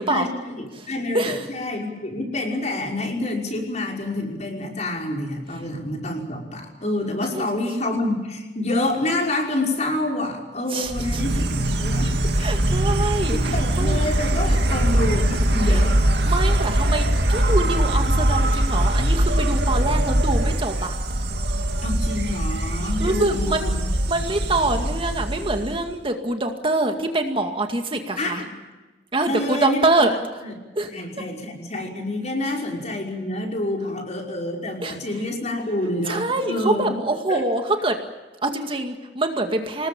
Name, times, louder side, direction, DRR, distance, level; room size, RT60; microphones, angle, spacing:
voice 1, 0.1-12.2 13.3-16.0 21.8-23.8 28.2-28.6 29.3-30.5 30.9-36.9 37.3-37.4, left 1 dB, 40° left, 1 dB, 5.6 m, -27 dB
voice 2, 10.7-11.2 12.4-14.0 15.7-15.8 16.3-20.9 23.0-23.7 24.1-28.4 29.1-30.1 30.8-30.9 34.8-34.9 36.1-38.0 38.4-39.9, right 2 dB, 30° right, 5 dB, 2.1 m, -25 dB
Insect, 10.9-25.9, right 1 dB, 65° right, 2.4 m, -22 dB
27.0 x 20.0 x 8.9 m, 1.2 s
head